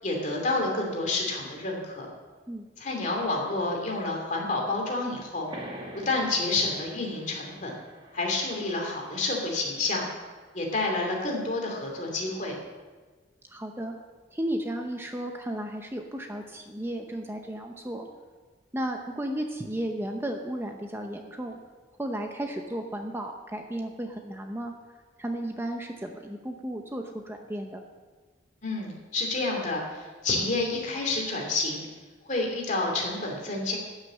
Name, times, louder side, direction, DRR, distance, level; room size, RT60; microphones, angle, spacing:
voice 1, 0.0-2.1 2.8-5.5 6.0-7.7 8.1-10.1 10.5-12.6 28.6-31.9 32.2-33.8, left 2 dB, 45° left, 0 dB, 2.8 m, -29 dB
sound 1, 5.5-10.7, right 1 dB, 30° right, 2.2 m, -46 dB
voice 2, 13.5-14.0 14.3-18.1 18.7-21.6 22.0-24.7 25.2-27.8, right 1 dB, 15° right, 3 dB, 0.8 m, -34 dB
12.5 x 6.5 x 7.6 m, 1.4 s
head